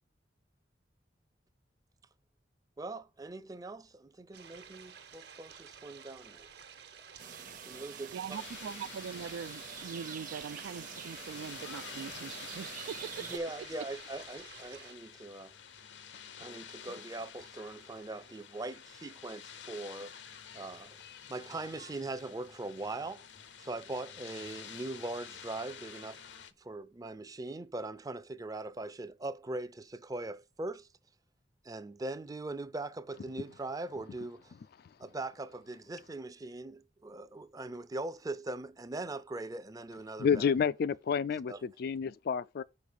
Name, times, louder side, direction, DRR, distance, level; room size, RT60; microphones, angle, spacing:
voice 1, 2.8-6.5 7.7-8.2 8.6-8.7 13.2-15.5 16.4-20.1 20.5-21.0 21.3-23.3 23.6-26.2 26.6-30.9 31.6-34.5 35.0-40.5 41.5-41.6, right 2 dB, 20° right, 0.5 m, -41 dB
sound 1, 4.3-14.9, right 7 dB, 65° right, 1.2 m, -53 dB
sound 2, 7.2-13.4, right 7 dB, 45° right, 0.9 m, -46 dB
voice 2, 8.1-13.4, right 7 dB, 90° right, 0.3 m, -42 dB
sound 3, 8.3-26.5, left 8 dB, 75° left, 0.7 m, -49 dB
voice 3, 40.2-42.6, left 6 dB, 60° left, 0.3 m, -29 dB
5.3 x 5.1 x 6.3 m
head